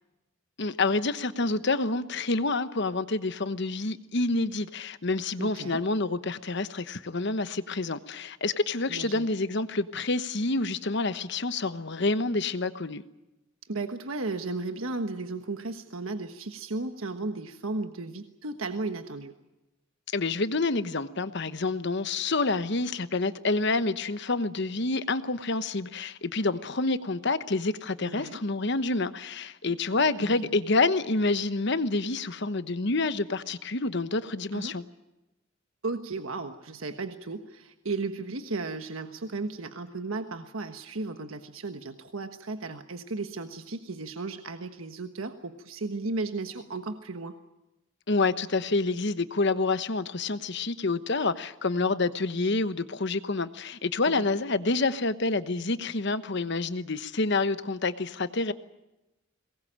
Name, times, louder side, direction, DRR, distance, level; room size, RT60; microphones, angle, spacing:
voice 1, 0.6-13.0 20.1-34.8 48.1-58.5, left 3 dB, 60° left, 12 dB, 1.1 m, -28 dB
voice 2, 5.4-5.8 8.9-9.3 13.7-19.3 28.0-28.4 30.0-30.5 34.5-34.8 35.8-47.4 54.2-54.3, right 3 dB, 90° right, 8 dB, 1.3 m, -35 dB
22.5 x 19.5 x 8.8 m, 0.98 s
head